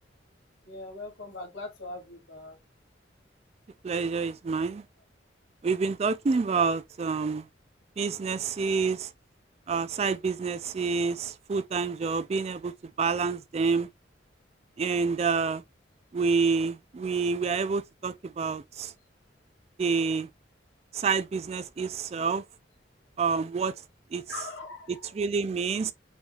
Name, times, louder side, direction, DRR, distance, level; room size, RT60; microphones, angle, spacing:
voice 1, 0.6-2.6 24.3-25.2, left 3 dB, 80° left, 2.3 m, -41 dB
voice 2, 3.8-4.8 5.6-7.5 8.0-9.1 9.7-12.7 13.0-13.9 14.8-15.6 16.1-18.9 19.8-20.3 20.9-22.4 23.2-23.7 24.1-24.2 25.2-25.9, right 5 dB, 35° right, 0.3 m, -28 dB
6.2 x 3.2 x 2.3 m
head